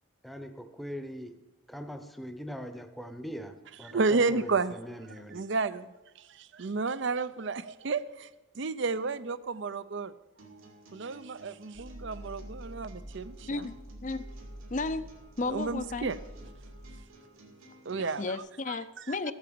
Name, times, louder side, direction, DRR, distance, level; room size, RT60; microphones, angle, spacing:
voice 1, 0.2-1.4 1.7-5.5, equal, ahead, 8 dB, 0.8 m, -41 dB
voice 2, 3.8-4.8 5.1-5.9 6.3-8.3 8.5-10.1 10.9-13.7 15.5-16.2 17.9-18.2, right 4 dB, 60° right, 16 dB, 0.6 m, -31 dB
sound 1, 10.4-18.4, right 1 dB, 75° right, 2.9 m, -54 dB
sound 2, 11.7-17.1, right 1 dB, 30° right, 0.9 m, -46 dB
voice 3, 14.7-15.1 15.4-16.2 18.2-19.3, left 3 dB, 35° left, 13 dB, 0.5 m, -33 dB
15.0 x 8.7 x 6.9 m, 1.1 s
head